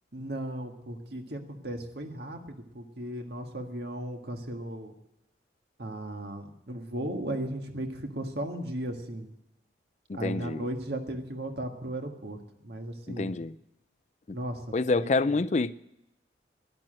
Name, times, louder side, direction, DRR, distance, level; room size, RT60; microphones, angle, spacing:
voice 1, 0.1-4.9 5.8-9.3 10.1-13.3 14.3-14.6 14.9-15.4, right 1 dB, 65° right, 1.7 m, -36 dB
voice 2, 10.1-10.6 13.1-13.5 14.3-14.4 14.7-15.7, left 3 dB, 40° left, 0.4 m, -27 dB
12.0 x 11.0 x 7.6 m
head